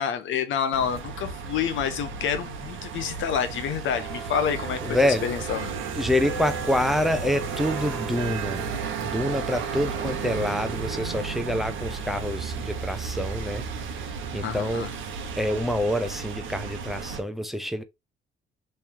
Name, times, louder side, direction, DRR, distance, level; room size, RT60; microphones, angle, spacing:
voice 1, 0.0-4.8 5.2-5.7 14.4-14.9, left 8 dB, 75° left, 0.7 m, -28 dB
sound 1, 0.7-17.2, right 6 dB, 80° right, 0.9 m, -33 dB
voice 2, 4.8-5.2 5.9-8.7 9.0-13.6 14.3-14.9 15.4-17.8, left 1 dB, ahead, 0.5 m, -26 dB
3.1 x 2.7 x 3.5 m
cardioid pair, 90°, 20 cm